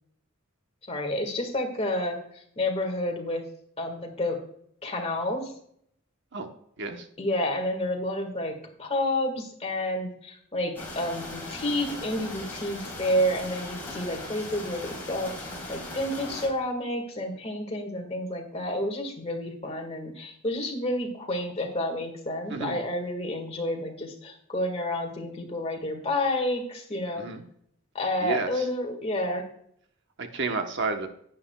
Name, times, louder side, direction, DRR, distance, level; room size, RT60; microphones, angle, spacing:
voice 1, 0.9-2.2 2.6-3.4 3.8-4.4 4.8-5.5 7.2-27.3 27.9-29.5, left 1 dB, 30° left, 3 dB, 1.8 m, -30 dB
sound 1, 10.8-16.5, left 2 dB, 10° left, 3.6 m, -38 dB
voice 2, 22.5-22.8 27.2-27.4 28.2-28.7 30.2-31.1, right 4 dB, 55° right, 5 dB, 1.0 m, -31 dB
11.0 x 9.5 x 2.3 m, 0.69 s
head